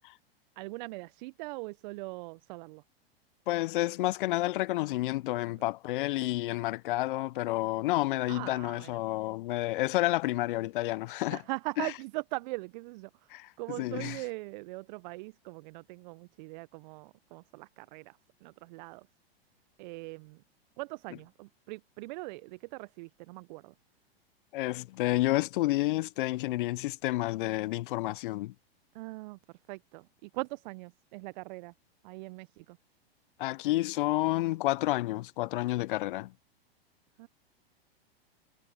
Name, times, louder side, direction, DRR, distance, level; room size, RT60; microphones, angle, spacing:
voice 1, 0.6-2.8 5.6-5.7 8.3-9.0 11.3-19.1 19.8-20.4 20.8-23.7 28.9-29.4 29.7-31.7 32.0-32.8 37.2-37.3, right 24 dB, 50° right, 0.8 m, -41 dB
voice 2, 3.5-11.4 11.8-11.9 13.3-13.5 13.8-14.2 24.5-28.5 33.4-36.3, left 18 dB, 55° left, 0.8 m, -30 dB
hypercardioid pair, 105°, 31 cm